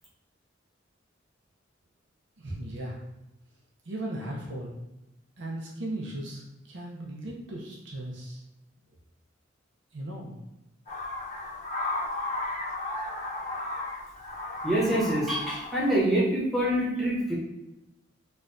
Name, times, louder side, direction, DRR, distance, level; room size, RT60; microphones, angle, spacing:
voice 1, 2.4-3.0 3.9-4.7 5.4-6.4 6.7-8.4 9.9-10.4, right 1 dB, 60° right, -3 dB, 0.6 m, -36 dB
sound 1, 10.9-16.0, left 2 dB, 35° left, 0.7 m, -34 dB
voice 2, 14.6-17.3, right 1 dB, ahead, -8 dB, 1.0 m, -25 dB
4.3 x 2.3 x 2.5 m, 0.94 s
head